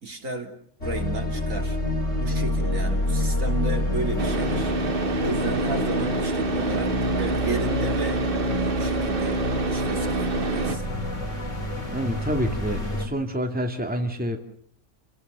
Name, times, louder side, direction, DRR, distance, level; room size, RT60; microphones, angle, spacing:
voice 1, 0.0-0.5 0.8-1.8 2.2-6.9 7.2-8.2 8.6-9.4 9.7-10.8, right 2 dB, 65° right, 4 dB, 3.6 m, -33 dB
sound 1, 0.8-13.1, left 1 dB, 60° left, 4.9 m, -28 dB
Car / Idling, 4.2-10.8, right 3 dB, 40° right, 1.3 m, -27 dB
voice 2, 11.9-14.4, equal, 5° right, 4 dB, 2.4 m, -27 dB
29.5 x 17.5 x 6.9 m, 0.63 s
omnidirectional pair, 1.5 m